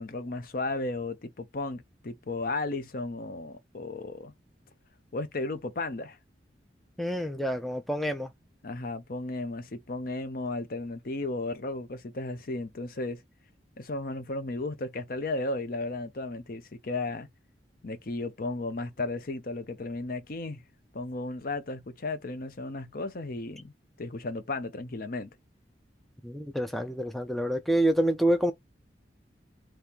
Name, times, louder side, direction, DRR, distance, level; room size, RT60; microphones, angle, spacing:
voice 1, 0.0-4.3 5.1-6.2 8.6-13.2 13.8-17.3 17.8-20.6 20.9-23.7 24.0-25.3, left 2 dB, 50° left, 0.7 m, -34 dB
voice 2, 7.0-8.3 26.2-28.5, right 1 dB, ahead, 0.3 m, -27 dB
3.1 x 2.8 x 3.5 m
head